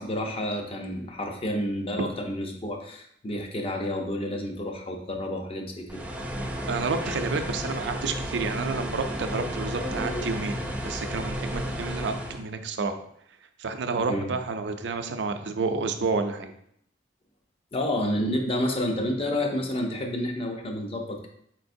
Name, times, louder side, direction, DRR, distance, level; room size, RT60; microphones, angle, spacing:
voice 1, 0.0-5.9 14.1-14.3 17.7-21.3, left 1 dB, 30° left, 3 dB, 0.6 m, -29 dB
sound 1, 5.9-12.4, equal, 5° right, 0.4 m, -32 dB
voice 2, 6.7-13.0 13.6-16.5, right 4 dB, 70° right, 7 dB, 0.5 m, -30 dB
4.5 x 4.2 x 2.6 m, 0.70 s
head